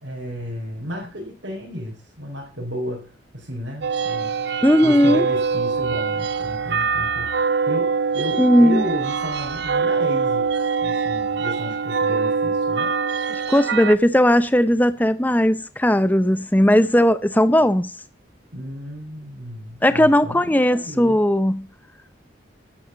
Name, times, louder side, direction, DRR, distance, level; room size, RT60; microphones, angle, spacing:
voice 1, 0.0-4.3 4.8-13.0 18.5-21.2, equal, 80° right, 4.5 m, -33 dB
sound 1, 3.8-14.0, right 5 dB, 65° right, 0.6 m, -23 dB
voice 2, 4.6-5.3 8.4-8.8 13.5-17.9 19.8-21.7, equal, 10° left, 0.7 m, -17 dB
12.0 x 8.4 x 7.0 m
head